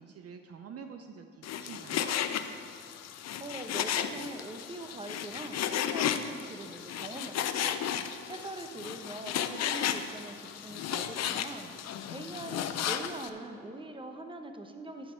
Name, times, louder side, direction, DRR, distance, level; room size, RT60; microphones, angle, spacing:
voice 1, 0.0-2.1, right 6 dB, 55° right, 6 dB, 0.7 m, -46 dB
Frying (food), 1.4-13.3, left 9 dB, 60° left, 0.6 m, -34 dB
voice 2, 3.4-15.1, right 2 dB, 15° right, 6 dB, 1.1 m, -43 dB
13.0 x 6.2 x 4.6 m, 2.4 s
supercardioid pair, 60°, 29 cm